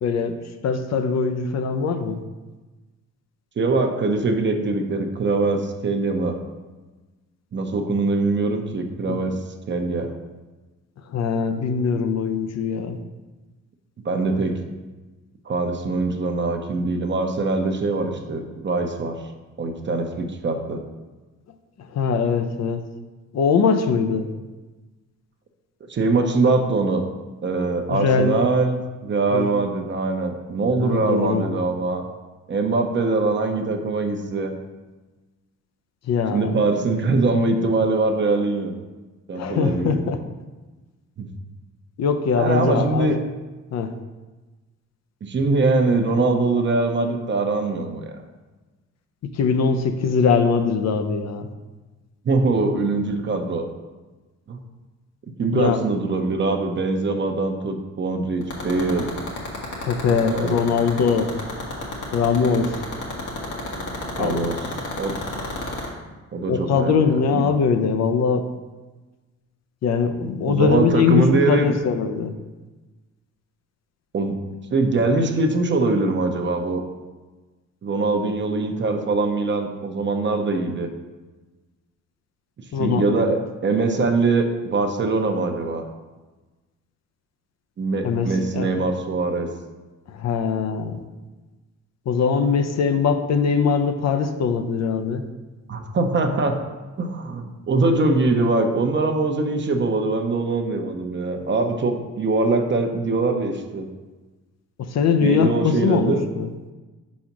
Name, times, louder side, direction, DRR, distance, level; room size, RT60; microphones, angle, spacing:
voice 1, 0.0-0.4 0.6-2.2 9.1-9.2 11.1-13.0 21.8-22.9 23.3-24.3 27.9-28.5 29.3-29.5 30.8-31.4 36.0-36.5 39.3-40.2 42.0-43.1 43.7-43.9 49.2-51.5 55.5-55.8 59.8-61.3 62.1-62.8 64.2-64.5 66.5-68.5 69.8-72.3 82.7-83.0 88.0-88.7 90.1-91.0 92.1-95.2 101.4-101.5 104.8-106.5, left 5 dB, 60° left, 7 dB, 0.6 m, -21 dB
voice 2, 3.6-6.4 7.5-9.4 9.7-10.1 14.0-14.6 15.5-19.2 19.6-20.8 25.9-27.0 27.4-28.8 29.0-32.0 32.5-34.5 36.3-38.7 39.3-40.1 41.2-41.3 42.4-43.2 45.2-48.1 52.2-53.7 54.5-54.6 55.4-59.1 60.2-60.6 64.2-64.6 65.0-65.3 66.3-66.9 67.3-67.4 70.5-71.8 74.1-74.4 74.7-76.8 77.8-80.9 82.8-85.8 87.8-89.5 95.7-96.6 97.0-103.9 105.2-106.2, right 3 dB, 40° right, 5 dB, 0.8 m, -22 dB
sound 1, 58.4-65.9, left 4 dB, 80° left, 1.7 m, -29 dB
4.9 x 4.2 x 5.9 m, 1.2 s
cardioid pair, 90°, 30 cm